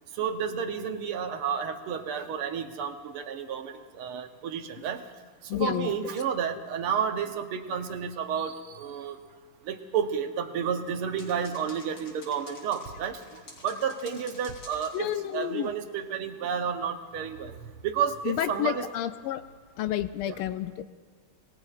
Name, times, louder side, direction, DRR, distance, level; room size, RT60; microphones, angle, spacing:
voice 1, 0.1-5.0 5.4-9.2 9.6-18.8 20.3-20.4, right 7 dB, 80° right, 7 dB, 1.9 m, -31 dB
voice 2, 5.5-6.0 14.9-15.7 18.2-19.4 19.8-20.8, left 12 dB, 85° left, 11 dB, 1.5 m, -30 dB
sound 1, 11.2-15.7, left 2 dB, 60° left, 4.1 m, -50 dB
27.0 x 19.5 x 2.5 m, 1.5 s
omnidirectional pair, 2.4 m